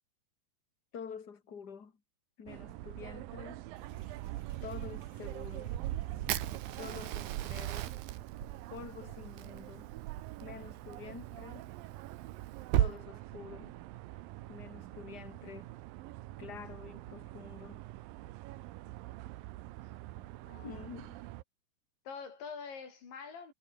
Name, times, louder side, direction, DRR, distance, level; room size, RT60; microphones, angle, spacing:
voice 1, 0.9-1.9 2.4-3.7 4.6-5.7 6.8-8.0 8.7-9.9 10.4-11.8 12.8-13.8 14.5-15.7 16.4-17.9 20.6-21.2, left 6 dB, 30° left, 2.4 m, -48 dB
sound 1, 2.5-21.4, right 17 dB, 90° right, 2.0 m, -44 dB
sound 2, 3.7-10.2, right 7 dB, 40° right, 3.0 m, -51 dB
Fire, 6.3-12.9, right 12 dB, 70° right, 3.4 m, -37 dB
voice 2, 20.2-20.9 22.0-23.5, left 5 dB, 75° left, 8.3 m, -46 dB
omnidirectional pair, 5.2 m